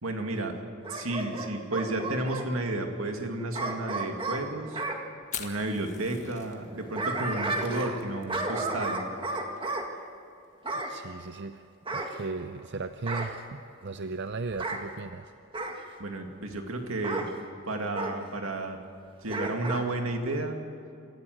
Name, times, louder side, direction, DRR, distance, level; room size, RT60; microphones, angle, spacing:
voice 1, 0.0-0.6 0.9-4.8 5.4-9.1 16.0-17.3 17.7-18.8 19.2-20.6, right 2 dB, 75° right, 4 dB, 2.3 m, -32 dB
Bark / Growling, 0.8-2.5 3.5-5.0 6.6-8.0 8.3-9.9 10.6-11.0 11.9-12.7 13.1-13.4 14.5-14.8 15.5-15.8 17.0-17.3 17.9-18.2 19.3-19.8 20.2-20.3, right 2 dB, 25° right, 1.9 m, -33 dB
Fire, 5.2-15.0, left 8 dB, 35° left, 1.6 m, -47 dB
voice 2, 10.9-11.7 11.9-15.3, right 3 dB, 55° right, 10 dB, 0.6 m, -36 dB
27.0 x 14.5 x 7.8 m, 2.5 s
head